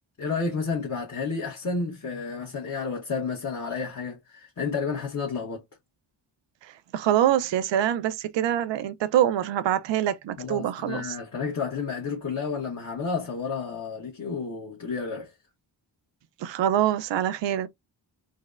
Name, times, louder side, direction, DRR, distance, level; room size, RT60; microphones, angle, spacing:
voice 1, 0.2-5.6 10.4-15.3, left 5 dB, 40° left, 1.1 m, -31 dB
voice 2, 6.9-11.1 16.4-17.7, right 11 dB, 90° right, 0.5 m, -25 dB
4.0 x 2.1 x 2.4 m
cardioid pair, 65°, 42 cm